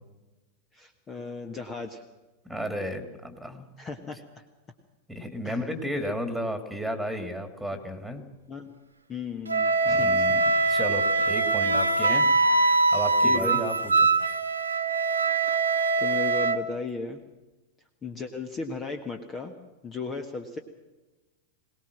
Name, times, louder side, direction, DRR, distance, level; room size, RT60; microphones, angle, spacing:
voice 1, 0.7-2.0 3.8-4.2 5.4-5.6 8.5-8.7 9.1-10.2 13.2-13.6 15.5-15.6 16.0-17.2 18.0-19.5 19.8-20.6, left 4 dB, 25° left, 6 dB, 1.6 m, -35 dB
voice 2, 2.4-3.6 5.1-8.2 9.9-10.4 10.7-12.6 12.9-13.7 14.0-14.1, equal, ahead, 7 dB, 2.8 m, -33 dB
Wind instrument woodwind instrument, 9.5-16.6, right 3 dB, 80° right, 1.3 m, -23 dB
22.5 x 18.5 x 6.1 m, 1.1 s
figure-of-eight pair, 90°, 0 cm